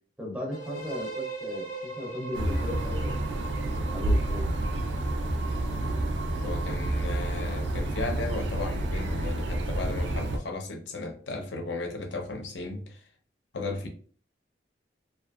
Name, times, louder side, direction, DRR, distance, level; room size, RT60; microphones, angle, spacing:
voice 1, 0.2-3.3 3.9-4.5, left 1 dB, 5° right, 0.5 m, -37 dB
sound 1, 0.5-8.3, right 3 dB, 45° left, 0.6 m, -41 dB
sound 2, 2.3-10.4, right 1 dB, 80° right, 0.4 m, -29 dB
voice 2, 6.4-13.0 13.5-13.9, left 3 dB, 90° left, 0.6 m, -35 dB
2.6 x 2.3 x 2.3 m
head